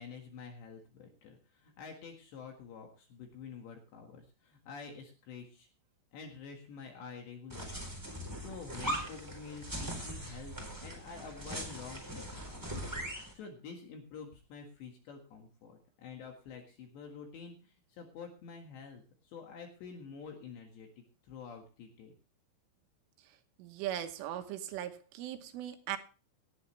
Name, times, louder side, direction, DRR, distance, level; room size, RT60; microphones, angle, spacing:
voice 1, 0.0-5.7 6.1-7.9 8.3-22.1, left 5 dB, 65° left, 2 dB, 3.7 m, -48 dB
sound 1, 7.5-13.3, right 1 dB, 5° right, 2.9 m, -40 dB
voice 2, 23.6-26.0, right 11 dB, 80° right, 7 dB, 3.6 m, -39 dB
18.5 x 10.5 x 3.2 m, 0.34 s
omnidirectional pair, 5.9 m